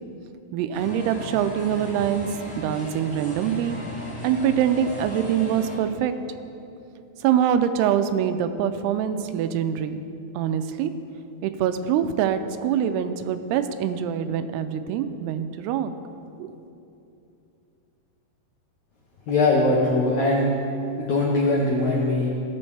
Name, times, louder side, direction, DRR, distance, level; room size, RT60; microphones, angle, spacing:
voice 1, 0.5-2.3 2.6-3.8 4.2-6.1 7.2-10.0 10.4-10.9 11.4-16.0 16.4-16.5, right 9 dB, 90° right, 10 dB, 2.6 m, -24 dB
sound 1, 0.7-5.8, left 1 dB, 30° left, 1.0 m, -37 dB
voice 2, 19.3-20.5 21.0-22.3, left 2 dB, 80° left, -3 dB, 1.6 m, -21 dB
16.5 x 7.0 x 3.3 m, 2.7 s
omnidirectional pair, 4.6 m